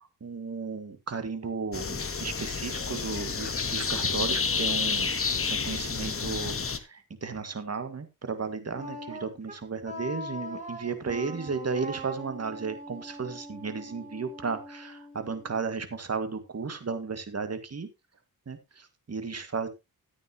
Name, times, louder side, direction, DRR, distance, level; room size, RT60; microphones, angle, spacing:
voice 1, 0.0-5.2 5.5-17.9 18.5-19.7, right 5 dB, 45° right, 9 dB, 2.0 m, -34 dB
sound 1, 1.7-6.8, left 5 dB, 35° left, 1.2 m, -30 dB
Wind instrument woodwind instrument, 8.7-15.7, equal, 20° right, 6.4 m, -42 dB
13.5 x 9.0 x 2.9 m, 0.23 s
cardioid pair, 85°, 36 cm